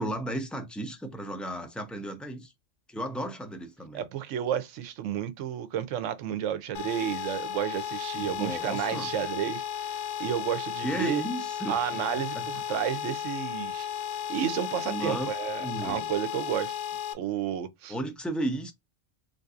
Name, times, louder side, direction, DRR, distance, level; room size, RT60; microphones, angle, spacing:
voice 1, 0.0-2.5 2.9-4.0 8.1-9.1 10.8-11.8 12.3-12.8 14.8-15.3 15.6-16.1 17.9-18.7, right 1 dB, ahead, 0.4 m, -34 dB
voice 2, 3.9-11.2 11.7-13.9 14.3-16.7 17.1-17.9, right 10 dB, 85° right, 1.0 m, -31 dB
sound 1, 6.7-17.1, left 9 dB, 80° left, 0.9 m, -34 dB
3.8 x 2.6 x 2.3 m
omnidirectional pair, 1.2 m